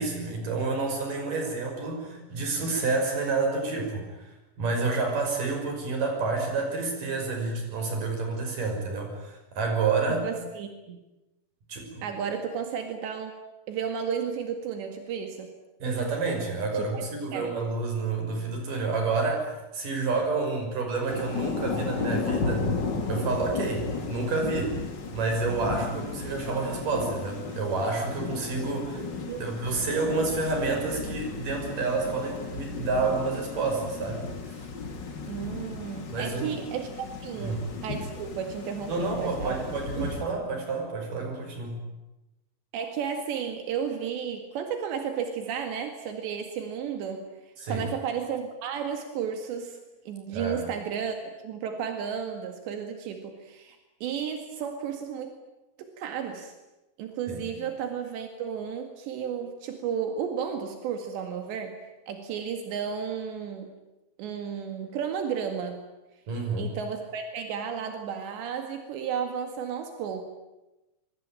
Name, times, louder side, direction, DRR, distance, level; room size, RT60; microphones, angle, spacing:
voice 1, 0.0-4.3 4.6-10.3 11.7-12.1 15.8-22.7 23.0-24.7 25.1-29.0 29.4-34.2 36.1-36.6 37.4-37.6 38.9-41.8 47.6-47.9 50.3-50.7 57.3-57.4 66.3-66.7, right 3 dB, 50° right, 3 dB, 7.2 m, -29 dB
voice 2, 10.1-11.0 12.0-13.4 13.7-15.5 16.7-17.1 17.3-17.5 29.2-29.9 35.2-39.6 39.9-40.1 42.7-49.8 50.1-55.3 55.8-56.5 57.0-61.8 62.1-63.7 64.2-65.9 66.6-70.2, right 7 dB, 85° right, 5 dB, 4.2 m, -33 dB
Thunder / Rain, 21.1-40.2, left 4 dB, 35° left, 2.0 m, -34 dB
25.5 x 24.0 x 9.1 m, 1.0 s
omnidirectional pair, 4.9 m